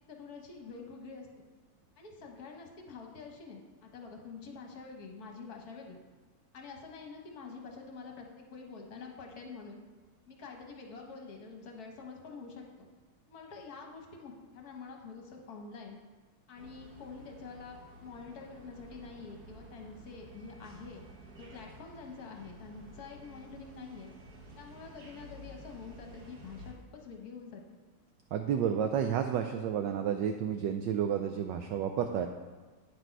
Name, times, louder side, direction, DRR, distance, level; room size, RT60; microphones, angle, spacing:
voice 1, 0.1-1.3 2.0-6.0 6.5-9.8 10.3-12.9 13.3-16.0 16.5-21.0 21.4-24.1 24.6-27.6, left 4 dB, 55° left, 2 dB, 1.4 m, -47 dB
sound 1, 16.6-26.7, right 1 dB, 55° right, 1.4 m, -52 dB
voice 2, 28.3-32.3, right 8 dB, 75° right, 6 dB, 1.1 m, -31 dB
9.1 x 6.1 x 4.6 m, 1.4 s
omnidirectional pair, 2.4 m